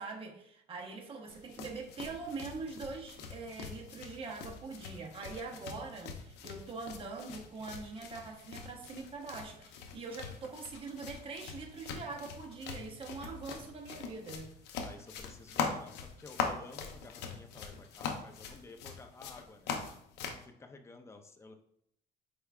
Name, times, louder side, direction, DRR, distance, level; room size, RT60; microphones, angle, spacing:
voice 1, 0.0-14.5, right 4 dB, 35° right, 0 dB, 0.8 m, -43 dB
sound 1, 1.3-20.4, left 5 dB, 85° left, 0.6 m, -42 dB
voice 2, 14.8-19.7 20.2-21.5, left 3 dB, 15° left, 5 dB, 0.5 m, -53 dB
4.7 x 3.3 x 2.3 m, 0.73 s
cardioid pair, 110°, 17 cm